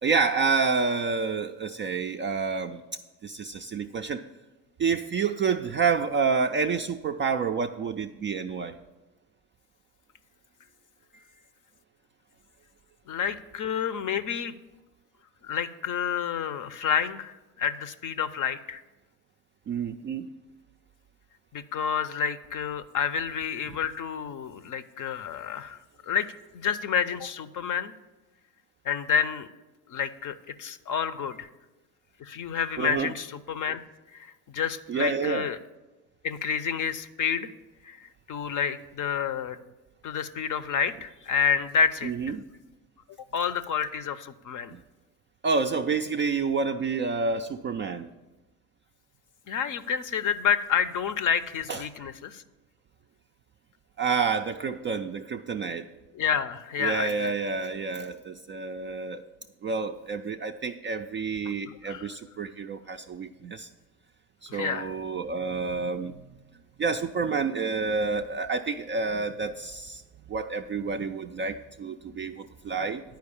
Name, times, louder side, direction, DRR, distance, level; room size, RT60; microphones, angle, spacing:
voice 1, 0.0-2.8 3.2-4.2 4.8-8.8 19.7-20.3 32.8-33.1 34.9-35.5 42.0-42.4 44.7-44.8 45.4-48.1 51.7-51.8 54.0-55.9 56.8-59.2 59.6-63.7 64.4-66.2 66.8-70.0 70.3-73.0, right 5 dB, 25° right, 4 dB, 0.3 m, -28 dB
voice 2, 13.1-14.5 15.4-18.8 21.5-26.3 26.5-27.9 28.8-29.5 29.9-31.5 32.2-33.8 34.1-35.6 36.2-37.5 37.8-39.6 40.0-42.3 43.3-44.7 49.5-52.4 56.1-57.3 61.7-62.1 64.5-64.9, left 7 dB, 40° left, 14 dB, 0.6 m, -29 dB
10.5 x 4.7 x 7.0 m, 1.1 s
hypercardioid pair, 65°, 49 cm